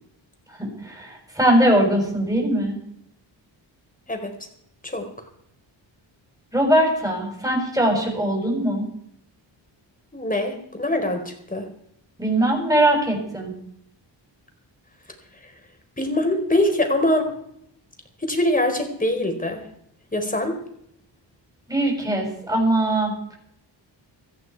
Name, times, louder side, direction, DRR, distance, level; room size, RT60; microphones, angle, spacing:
voice 1, 0.6-2.8 6.5-8.9 12.2-13.5 21.7-23.1, right 1 dB, 10° right, 0 dB, 7.1 m, -21 dB
voice 2, 10.1-11.7 15.4-15.5 16.0-17.3 18.2-19.6 20.1-20.6, left 1 dB, 20° left, 4 dB, 4.4 m, -23 dB
17.5 x 14.0 x 4.7 m, 0.72 s
cardioid pair, 70°, 46 cm